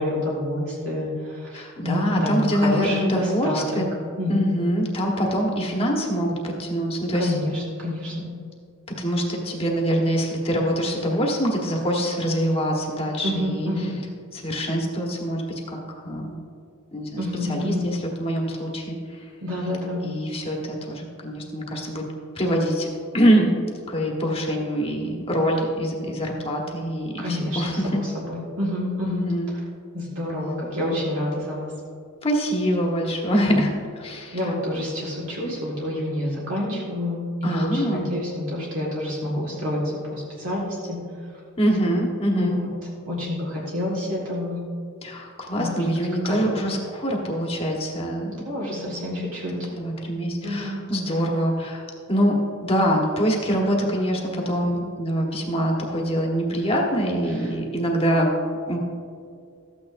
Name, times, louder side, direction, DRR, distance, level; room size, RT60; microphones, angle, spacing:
voice 1, 0.0-3.7 4.2-4.5 7.2-8.3 13.2-14.0 17.2-17.9 19.4-20.0 27.2-29.3 29.9-31.7 33.5-33.6 34.3-39.8 40.1-41.0 42.3-42.7 43.1-44.6 45.6-45.8 46.3-46.4 48.3-49.7 50.4-50.8 57.3-57.5, left 1 dB, 60° right, -5 dB, 1.8 m, -28 dB
voice 2, 1.5-3.9 4.3-7.3 9.0-13.7 14.3-16.3 16.9-17.2 17.5-19.3 20.0-22.0 22.3-22.9 23.1-23.5 23.9-28.0 29.0-29.5 32.2-34.4 37.4-38.1 41.6-42.6 45.0-48.3 49.7-51.8 52.1-52.3 52.6-58.3 58.7-58.8, equal, 25° left, -1 dB, 1.3 m, -24 dB
13.5 x 8.8 x 2.6 m, 2.4 s
head